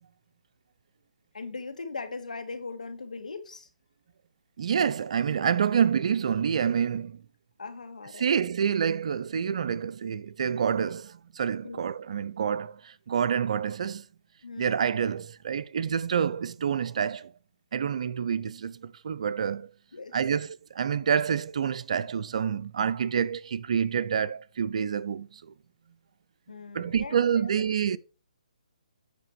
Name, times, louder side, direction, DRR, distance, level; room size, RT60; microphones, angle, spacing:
voice 1, 1.3-3.7 7.6-8.3 11.6-11.9 14.4-14.8 19.9-20.2 26.5-28.0, left 4 dB, 85° left, 2.1 m, -40 dB
voice 2, 4.6-7.2 8.2-14.0 14.6-17.3 17.7-19.7 20.1-20.5 20.7-25.4 26.7-28.0, right 7 dB, 60° right, 0.7 m, -27 dB
8.3 x 6.0 x 4.8 m
hypercardioid pair, 155°, 4 cm